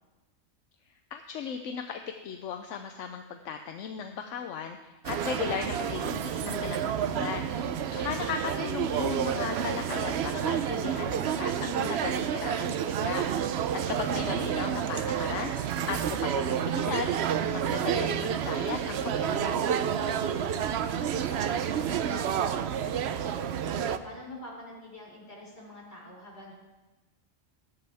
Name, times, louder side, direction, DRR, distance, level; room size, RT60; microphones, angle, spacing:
voice 1, 1.1-7.5 7.9-13.2 13.9-15.5 15.9-17.1 17.5-19.7, left 7 dB, 80° left, 6 dB, 1.0 m, -36 dB
sound 1, 5.0-24.0, right 8 dB, 65° right, 0.8 m, -29 dB
voice 2, 7.5-8.0 19.9-23.4 24.0-26.5, left 1 dB, 55° left, -4 dB, 4.9 m, -46 dB
14.5 x 13.0 x 3.5 m, 1.1 s
omnidirectional pair, 1.3 m